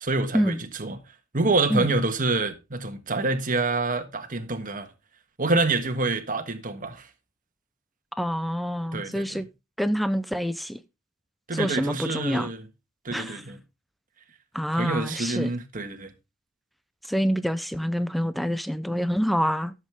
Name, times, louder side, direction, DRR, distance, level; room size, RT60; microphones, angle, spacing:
voice 1, 0.0-1.0 1.3-4.9 5.4-7.1 8.9-9.4 11.5-12.7 13.0-13.6 14.7-16.1, right 3 dB, 40° right, 1.6 m, -27 dB
voice 2, 8.2-9.5 9.8-10.8 11.5-12.5 13.1-13.4 14.5-15.5 17.1-19.7, equal, ahead, 0.5 m, -26 dB
14.0 x 7.6 x 3.6 m
head